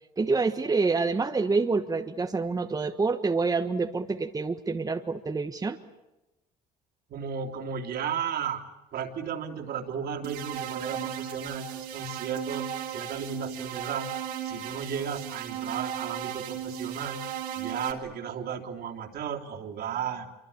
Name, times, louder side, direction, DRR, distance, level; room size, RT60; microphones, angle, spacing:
voice 1, 0.2-5.8, right 4 dB, 20° right, 6 dB, 1.3 m, -27 dB
voice 2, 7.1-8.6 8.9-14.1 14.4-17.2 17.5-20.3, right 7 dB, 60° right, 2 dB, 3.4 m, -34 dB
sound 1, 10.2-17.9, right 9 dB, 90° right, 3.1 m, -36 dB
25.5 x 24.0 x 8.8 m, 0.99 s
supercardioid pair, 90°, 18 cm